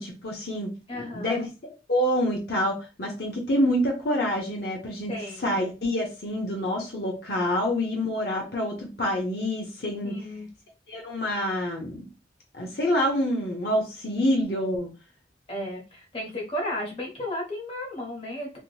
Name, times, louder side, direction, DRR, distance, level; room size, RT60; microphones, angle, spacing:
voice 1, 0.0-0.7 0.9-1.5 1.9-5.1 5.4-10.1 10.9-12.1 12.5-14.9, equal, 60° left, 0 dB, 0.8 m, -27 dB
voice 2, 0.9-1.4 5.1-5.6 10.0-10.5 15.5-18.6, left 1 dB, 30° left, 0 dB, 1.0 m, -34 dB
3.5 x 2.9 x 2.2 m, 0.30 s
head